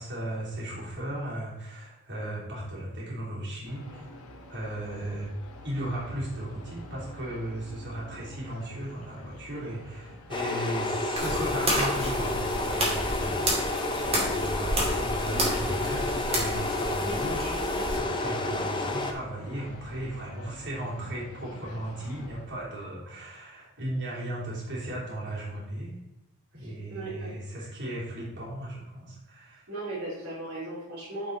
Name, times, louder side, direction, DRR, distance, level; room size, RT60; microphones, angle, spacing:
voice 1, 0.0-4.2 4.5-5.3 5.6-13.8 14.1-25.9 26.5-29.6, right 1 dB, 55° right, -6 dB, 3.2 m, -36 dB
sound 1, 3.6-22.5, left 1 dB, 85° left, 1.3 m, -48 dB
sound 2, 10.3-19.1, left 2 dB, 20° left, 0.8 m, -30 dB
sound 3, 11.2-18.0, right 1 dB, 30° right, 2.4 m, -31 dB
voice 2, 26.6-27.4 29.7-31.3, right 2 dB, 70° right, -7 dB, 2.8 m, -38 dB
9.7 x 5.0 x 3.9 m, 0.94 s
head